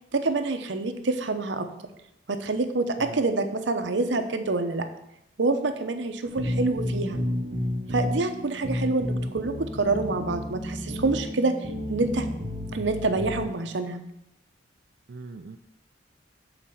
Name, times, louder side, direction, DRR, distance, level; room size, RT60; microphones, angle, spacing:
voice 1, 0.1-1.7 2.3-4.9 5.4-7.2 7.9-12.3 12.7-14.0, right 3 dB, 80° right, 7 dB, 0.8 m, -27 dB
voice 2, 3.0-3.3 15.1-15.6, right 3 dB, 60° right, 5 dB, 0.4 m, -41 dB
sound 1, 6.2-13.4, left 1 dB, 45° right, 1.4 m, -31 dB
8.1 x 4.2 x 7.0 m, 0.82 s
head